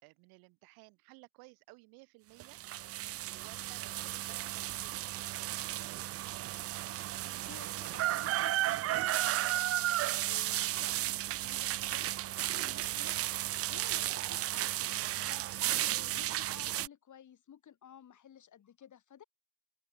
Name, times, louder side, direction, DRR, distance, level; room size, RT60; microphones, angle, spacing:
voice 1, 0.0-2.6 3.3-5.5, right 29 dB, 75° right, 4.4 m, -57 dB
sound 1, 2.4-16.9, right 14 dB, 40° right, 0.4 m, -34 dB
voice 2, 7.5-19.2, left 9 dB, 50° left, 5.6 m, -56 dB
hypercardioid pair, 50°, 37 cm